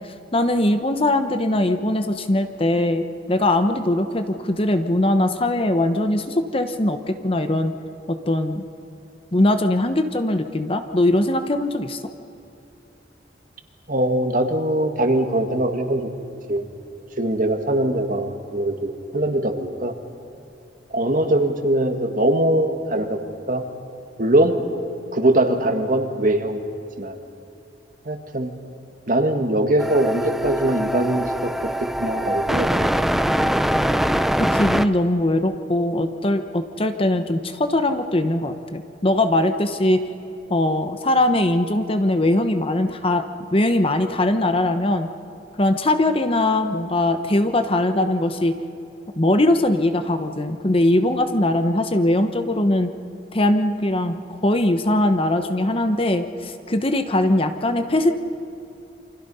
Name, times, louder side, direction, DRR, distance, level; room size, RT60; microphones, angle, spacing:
voice 1, 0.3-7.7 8.1-8.6 9.3-12.0 34.4-40.0 40.5-43.2 43.5-45.1 45.6-48.6 49.2-52.9 53.3-58.1, left 1 dB, 30° left, 8 dB, 1.0 m, -21 dB
voice 2, 13.9-16.1 16.5-16.7 17.2-19.9 20.9-23.6 24.2-24.5 25.1-26.6 27.0-27.2 28.1-28.5 29.1-31.5 31.8-32.9, right 1 dB, 50° right, 6 dB, 1.9 m, -21 dB
sound 1, 29.8-34.9, equal, ahead, 0.5 m, -22 dB
28.5 x 25.5 x 5.6 m, 2.8 s
head